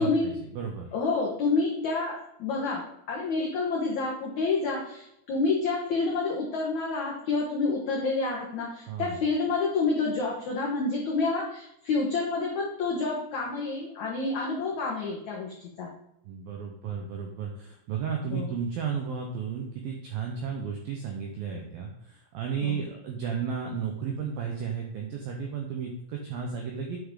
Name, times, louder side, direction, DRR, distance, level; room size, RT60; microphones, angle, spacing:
voice 1, 0.0-0.9 8.9-9.2 16.2-27.0, right 6 dB, 85° right, 2 dB, 2.1 m, -33 dB
voice 2, 0.9-15.9 18.3-18.6 22.6-22.9, left 3 dB, 85° left, -3 dB, 1.6 m, -28 dB
9.3 x 7.3 x 3.8 m, 0.78 s
omnidirectional pair, 5.5 m